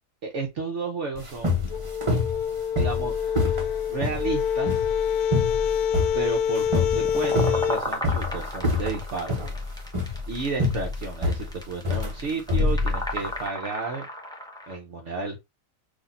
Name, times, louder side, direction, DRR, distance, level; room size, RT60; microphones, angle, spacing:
voice 1, 0.2-1.7 2.8-3.1 3.9-4.8 6.1-9.4 10.3-14.1 14.7-15.4, right 4 dB, 60° right, 1.0 m, -32 dB
walking up stairs, 1.2-13.4, left 3 dB, 25° right, 1.0 m, -27 dB
sound 1, 1.7-7.8, left 8 dB, 90° left, 1.1 m, -26 dB
sound 2, 6.6-14.8, equal, 5° left, 0.7 m, -34 dB
3.9 x 2.9 x 4.1 m
omnidirectional pair, 1.6 m